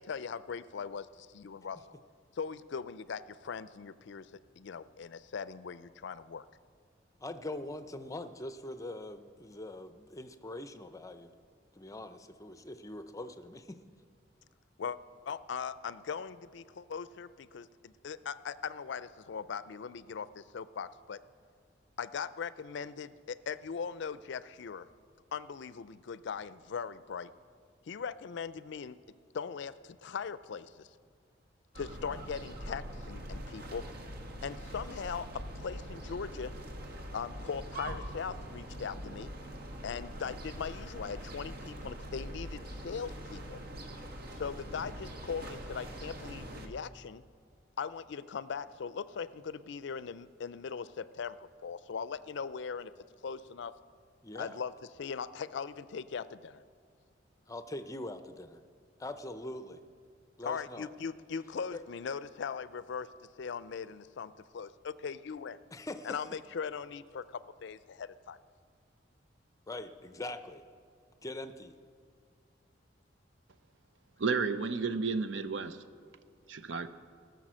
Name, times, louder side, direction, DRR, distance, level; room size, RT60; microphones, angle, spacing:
voice 1, 0.0-1.8 2.4-4.3 4.6-6.4 14.8-15.0 15.3-21.2 22.0-24.9 25.3-27.3 27.9-29.0 29.3-30.9 31.7-33.8 34.4-35.3 35.6-36.5 37.1-39.3 39.8-43.6 44.4-47.2 47.8-52.9 53.2-53.7 54.3-54.7 55.0-56.6 60.5-63.1 63.4-65.6 66.0-68.4, left 6 dB, 65° left, 0.4 m, -40 dB
voice 2, 7.2-11.3 11.7-13.8 54.2-54.6 57.5-58.6 59.0-59.8 60.4-60.9 61.7-61.8 65.7-66.3 69.7-70.6 71.2-71.7, left 2 dB, 20° left, 0.6 m, -42 dB
sound 1, 31.7-46.7, equal, 55° right, 1.3 m, -43 dB
voice 3, 74.2-75.8 76.5-76.9, right 4 dB, 70° right, 0.7 m, -32 dB
19.5 x 6.9 x 6.2 m
head